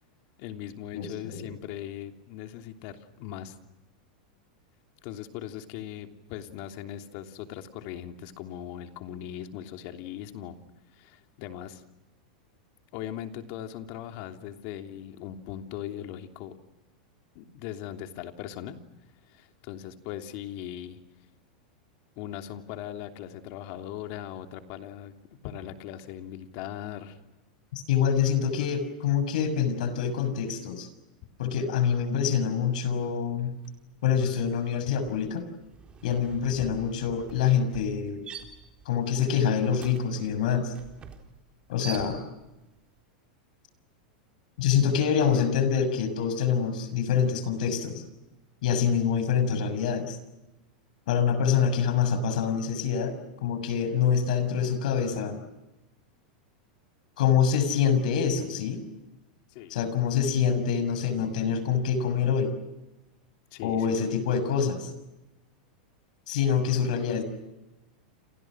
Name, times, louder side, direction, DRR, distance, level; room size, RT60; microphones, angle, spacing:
voice 1, 0.4-3.6 5.0-10.5 10.9-11.8 12.9-16.5 17.3-18.8 19.3-21.0 22.2-25.1 25.4-27.2 59.5-59.8 63.5-64.1, left 11 dB, 55° left, 6 dB, 3.1 m, -39 dB
voice 2, 0.9-1.4 27.7-30.9 31.4-33.5 34.0-35.5 36.0-38.2 38.8-40.7 41.7-42.2 44.6-48.0 48.6-50.2 51.1-53.2 53.4-55.4 57.2-58.8 59.7-62.5 63.6-64.9 66.3-67.2, left 7 dB, 70° left, 11 dB, 6.4 m, -26 dB
sound 1, 33.6-33.9 34.2-42.6, right 6 dB, 25° right, 4.1 m, -46 dB
29.0 x 28.5 x 6.3 m, 1.0 s
supercardioid pair, 130°, 4 cm